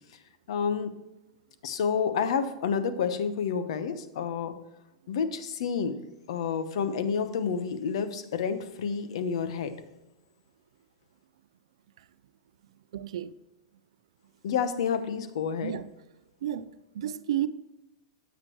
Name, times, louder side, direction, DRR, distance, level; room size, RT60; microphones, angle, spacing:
voice 1, 0.5-0.9 1.6-4.6 5.1-6.0 6.3-9.8 14.4-15.8, left 6 dB, 75° left, 1.0 m, -29 dB
voice 2, 12.9-13.3 15.6-15.9 16.4-17.5, right 11 dB, 75° right, 0.4 m, -32 dB
9.8 x 7.4 x 3.1 m
hypercardioid pair, 120°, 3 cm